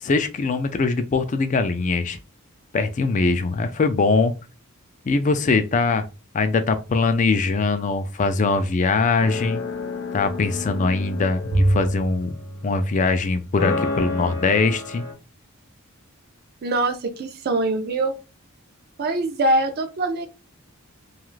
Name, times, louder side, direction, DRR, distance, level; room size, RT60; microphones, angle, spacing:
voice 1, 0.0-2.2 2.7-4.3 5.1-6.0 6.3-9.6 10.1-12.4 12.6-15.0, left 4 dB, 35° left, 9 dB, 0.3 m, -22 dB
sound 1, 9.2-12.8 13.6-15.1, left 4 dB, 50° left, 0.7 m, -30 dB
Bowed string instrument, 11.5-13.9, right 1 dB, 70° right, 0.7 m, -26 dB
voice 2, 16.6-18.2 19.0-20.3, right 2 dB, 45° right, 7 dB, 0.4 m, -23 dB
2.4 x 2.3 x 3.1 m, 0.30 s
head